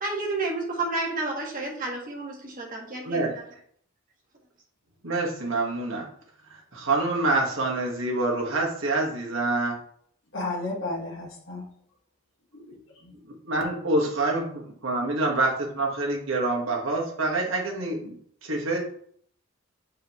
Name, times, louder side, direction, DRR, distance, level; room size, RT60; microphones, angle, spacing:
voice 1, 0.0-3.2, right 2 dB, 40° right, -2 dB, 1.6 m, -30 dB
voice 2, 3.0-3.4 5.0-6.1 6.5-9.8 13.4-18.8, right 2 dB, 65° right, -1 dB, 1.6 m, -26 dB
voice 3, 10.3-11.6 12.5-13.2, left 2 dB, 65° left, -4 dB, 1.9 m, -33 dB
7.6 x 4.7 x 3.1 m, 0.64 s
head